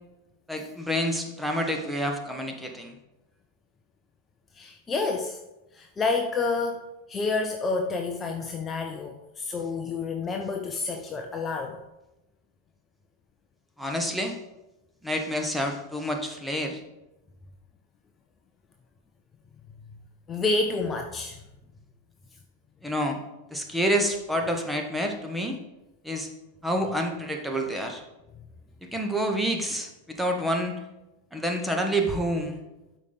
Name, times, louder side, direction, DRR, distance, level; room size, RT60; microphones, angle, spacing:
voice 1, 0.5-3.0 13.8-14.4 15.0-16.8 22.8-23.2 23.5-25.6 26.0-26.3 26.6-28.0 28.8-30.8 31.3-32.6, equal, ahead, 3 dB, 1.2 m, -28 dB
voice 2, 4.5-5.4 5.7-11.8 20.3-21.4, left 3 dB, 20° left, 4 dB, 0.7 m, -29 dB
12.5 x 5.1 x 4.0 m, 0.97 s
figure-of-eight pair, 90°, 0 cm